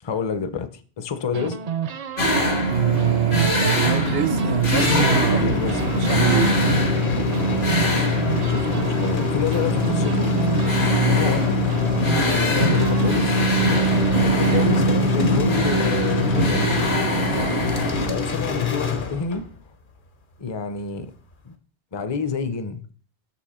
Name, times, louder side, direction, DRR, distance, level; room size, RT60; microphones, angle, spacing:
voice 1, 0.0-1.6 5.3-5.8 8.4-10.3 11.0-11.6 12.3-13.5 14.4-16.7 18.1-19.5 20.4-21.1 21.4-21.5 21.9-22.8, left 6 dB, 30° left, 0.5 m, -28 dB
sound 1, 1.3-4.7 4.9-14.7, right 8 dB, 50° right, 0.5 m, -32 dB
sound 2, 2.2-18.1, right 1 dB, 75° left, 1.9 m, -22 dB
voice 2, 2.7-5.5 5.9-6.6 10.9-11.2, right 10 dB, 70° right, 0.8 m, -24 dB
sound 3, 4.6-19.6, left 7 dB, 55° left, 1.0 m, -26 dB
6.6 x 5.5 x 4.2 m
omnidirectional pair, 1.0 m